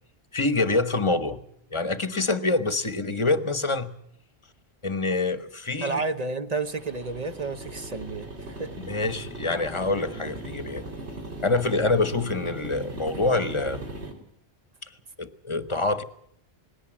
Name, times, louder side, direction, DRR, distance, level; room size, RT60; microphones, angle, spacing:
voice 1, 0.3-1.4 1.7-3.9 4.8-6.0 8.8-10.8 11.4-13.8 15.2-16.0, left 3 dB, 30° left, 11 dB, 1.1 m, -26 dB
voice 2, 5.8-8.7, right 3 dB, 40° right, 9 dB, 1.1 m, -31 dB
sound 1, 6.7-14.1, right 2 dB, 75° right, 3.3 m, -39 dB
20.0 x 17.0 x 8.7 m, 0.73 s
omnidirectional pair, 1.1 m